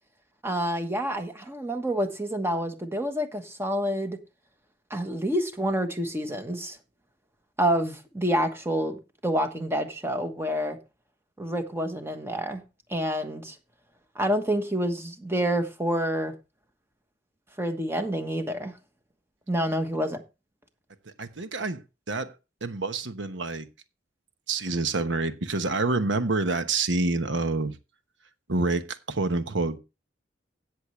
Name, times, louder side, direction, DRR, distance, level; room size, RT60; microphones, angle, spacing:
voice 1, 0.4-4.2 4.9-6.8 7.6-10.8 11.4-12.6 12.9-13.6 14.1-16.3 17.6-18.8 19.5-20.2, equal, 15° right, 1.2 m, -28 dB
voice 2, 21.2-21.8 22.1-22.3 22.6-23.7 24.5-27.8 28.5-29.8, right 3 dB, 70° right, 1.1 m, -27 dB
17.0 x 6.6 x 3.2 m
head